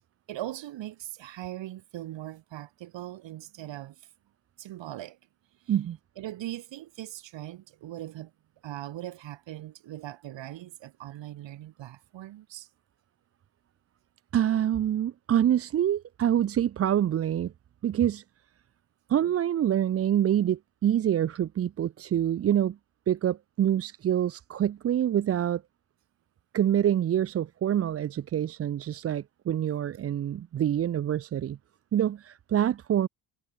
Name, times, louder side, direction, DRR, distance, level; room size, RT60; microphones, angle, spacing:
voice 1, 0.3-4.0 4.6-5.2 6.2-8.3 8.6-12.7, right 14 dB, 70° right, 2.3 m, -40 dB
voice 2, 14.3-17.5 17.8-18.2 19.1-22.8 23.1-25.6 26.5-31.6 31.9-33.1, right 10 dB, 30° right, 0.5 m, -26 dB
supercardioid pair, 80°, 46 cm